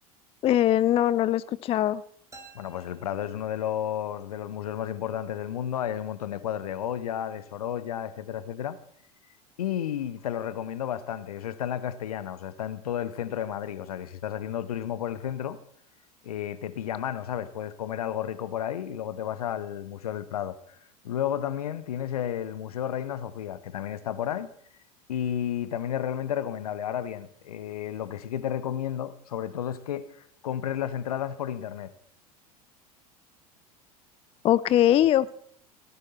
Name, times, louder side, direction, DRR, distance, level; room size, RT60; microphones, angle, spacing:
voice 1, 0.4-2.0 34.4-35.3, left 12 dB, 30° left, 0.5 m, -21 dB
sound 1, 2.3-4.0, right 3 dB, 15° right, 3.5 m, -53 dB
voice 2, 2.5-8.8 9.6-15.6 16.2-20.6 21.0-24.5 25.1-31.9, left 10 dB, 70° left, 1.1 m, -32 dB
17.5 x 13.5 x 4.3 m
figure-of-eight pair, 80°, 20 cm